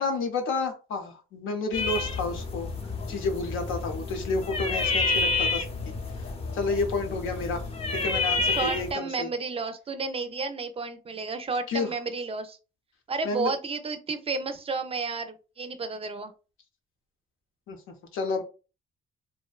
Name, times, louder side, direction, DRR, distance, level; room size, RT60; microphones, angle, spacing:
voice 1, 0.0-2.7 3.1-5.9 6.5-7.7 7.9-9.3 11.7-11.9 13.2-13.5 17.7-17.8 18.1-18.4, left 3 dB, 85° left, 5 dB, 0.6 m, -30 dB
sound 1, 1.7-8.9, left 3 dB, 30° left, 0.5 m, -29 dB
voice 2, 8.5-12.6 13.1-16.3, right 4 dB, 30° right, 9 dB, 0.4 m, -32 dB
2.6 x 2.1 x 2.3 m, 0.33 s
cardioid pair, 90°, 20 cm